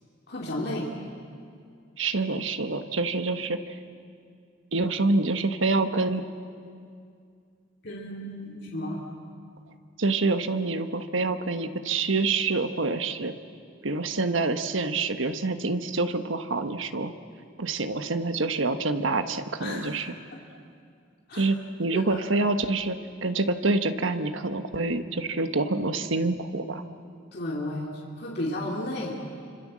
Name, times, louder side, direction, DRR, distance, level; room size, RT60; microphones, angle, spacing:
voice 1, 0.3-0.9 7.8-9.0 19.6-20.2 21.3-21.5 21.9-22.3 27.3-29.1, left 1 dB, 55° left, -3 dB, 2.9 m, -33 dB
voice 2, 2.0-3.8 4.7-6.2 10.0-13.3 13.8-17.1 17.6-20.1 21.3-26.8, right 3 dB, 90° right, 8 dB, 1.4 m, -27 dB
30.0 x 26.0 x 7.6 m, 2.3 s
head